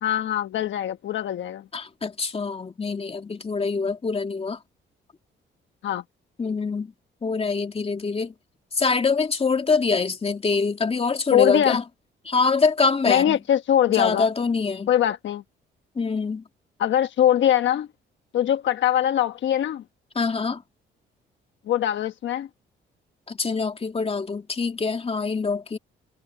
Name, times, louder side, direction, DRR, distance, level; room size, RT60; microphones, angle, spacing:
voice 1, 0.0-1.7 5.8-6.0 11.3-11.8 13.1-14.3 14.9-15.4 16.8-17.9 18.3-19.8 21.7-22.5, left 10 dB, 70° left, 1.2 m, -22 dB
voice 2, 1.7-4.6 6.4-6.9 7.2-8.3 8.7-11.8 12.2-13.4 13.9-14.9 16.0-16.4 20.2-20.6 23.3-25.8, left 4 dB, 30° left, 2.5 m, -24 dB
cardioid pair, 90°, 20 cm